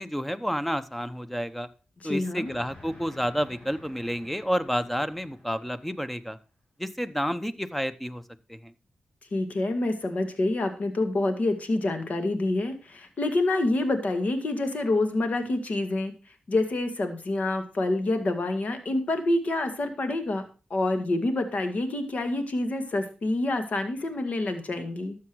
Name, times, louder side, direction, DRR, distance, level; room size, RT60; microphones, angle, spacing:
voice 1, 0.0-1.7 2.0-6.4 6.8-8.2 8.5-8.7, equal, 5° left, 13 dB, 0.9 m, -30 dB
voice 2, 2.0-2.5 9.3-16.1 16.5-20.4 20.7-25.2, left 2 dB, 65° left, 7 dB, 2.0 m, -27 dB
Train, 2.4-6.4, left 2 dB, 35° left, 6.4 m, -51 dB
12.5 x 7.3 x 4.7 m, 0.34 s
cardioid pair, 60°, 3 cm